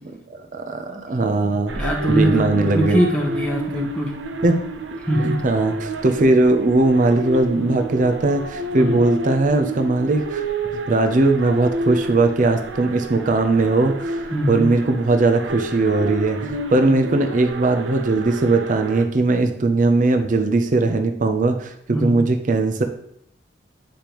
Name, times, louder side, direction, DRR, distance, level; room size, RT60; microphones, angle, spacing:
voice 1, 0.3-1.7 2.1-3.0 4.4-4.6 5.2-10.5 10.9-22.8, right 2 dB, 45° right, 5 dB, 0.5 m, -19 dB
voice 2, 1.5-4.1 5.0-5.4 8.7-9.0 14.3-14.7 16.9-17.1 21.9-22.2, equal, 5° left, -1 dB, 0.9 m, -22 dB
sound 1, 1.7-19.1, right 2 dB, 85° right, 0.7 m, -30 dB
8.6 x 5.1 x 3.0 m, 0.73 s
head